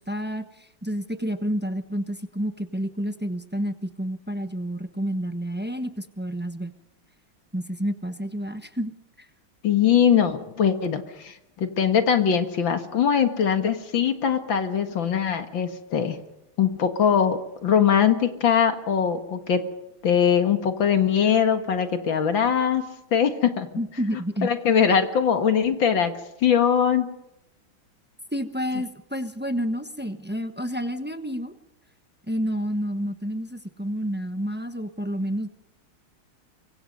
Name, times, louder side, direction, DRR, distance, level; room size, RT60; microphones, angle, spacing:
voice 1, 0.0-6.7 7.5-8.9 9.2-9.3 23.8-24.5 24.9-25.0 28.3-31.5 32.3-35.5, equal, 10° right, 8 dB, 0.6 m, -29 dB
voice 2, 9.6-16.2 16.6-19.6 20.0-22.9 23.1-23.7 24.4-26.1 26.4-27.1, left 8 dB, 65° left, 7 dB, 2.4 m, -21 dB
24.5 x 24.5 x 5.4 m, 0.85 s
omnidirectional pair, 2.3 m